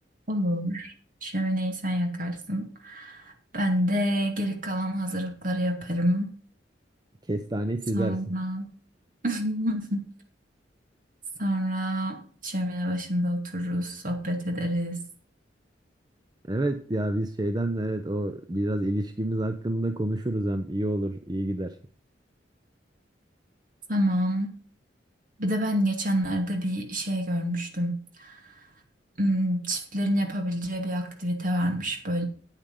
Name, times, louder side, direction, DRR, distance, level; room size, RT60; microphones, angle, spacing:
voice 1, 0.3-0.9 1.2-6.3 7.9-8.7 9.2-10.1 11.4-15.0 23.9-24.5 25.4-28.4 29.2-32.2, equal, 50° right, 4 dB, 2.5 m, -28 dB
voice 2, 7.3-8.2 16.5-21.8, right 1 dB, 25° right, 9 dB, 0.6 m, -28 dB
9.1 x 8.6 x 5.5 m, 0.43 s
head